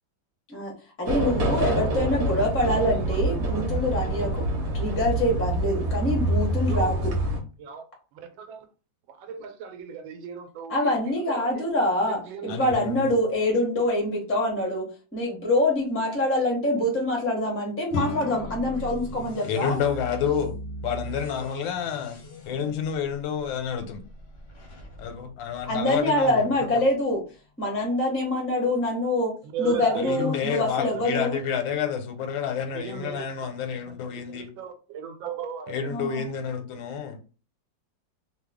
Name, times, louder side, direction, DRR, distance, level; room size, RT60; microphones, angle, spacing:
voice 1, 1.0-4.4 4.7-7.1 10.7-14.9 15.1-19.8 25.6-27.2 27.6-29.3 29.6-31.4 35.9-36.3, left 1 dB, 15° left, 0.4 m, -25 dB
sound 1, 1.1-7.4, right 1 dB, 60° right, 1.1 m, -26 dB
voice 2, 2.0-3.6 6.6-7.0 7.6-7.8 8.1-8.6 9.1-10.9 11.3-11.7 12.3-12.5 26.2-26.4 29.5-30.4 30.8-31.1 32.7-33.5 34.3-35.8, right 6 dB, 85° right, 1.4 m, -36 dB
voice 3, 12.5-13.2 19.4-20.5 20.8-22.2 22.5-24.0 25.0-26.8 30.0-34.5 35.7-37.2, left 7 dB, 90° left, 1.4 m, -29 dB
sound 2, 17.9-27.4, left 3 dB, 75° left, 1.0 m, -42 dB
sound 3, 18.4-26.3, right 1 dB, 50° left, 0.7 m, -41 dB
3.0 x 2.2 x 3.4 m
omnidirectional pair, 2.1 m